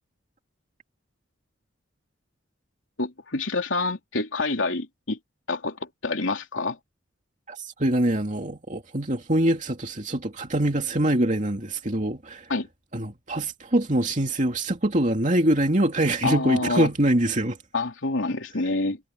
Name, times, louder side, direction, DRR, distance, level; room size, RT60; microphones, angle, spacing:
voice 1, 3.0-5.2 5.5-6.8 12.5-12.7 16.2-16.9 17.7-19.0, left 3 dB, 75° left, 3.3 m, -27 dB
voice 2, 7.5-12.5 12.9-17.6, right 1 dB, 40° right, 2.7 m, -24 dB
head